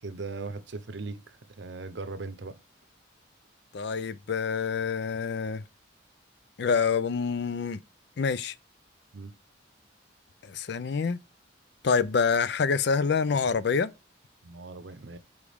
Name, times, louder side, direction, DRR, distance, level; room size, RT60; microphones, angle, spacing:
voice 1, 0.0-2.6 9.1-9.3 14.4-15.2, right 3 dB, 65° right, 0.7 m, -39 dB
voice 2, 3.7-5.6 6.6-7.8 8.2-8.5 10.4-11.2 11.8-13.9, left 5 dB, 60° left, 0.4 m, -26 dB
5.1 x 4.8 x 5.0 m
head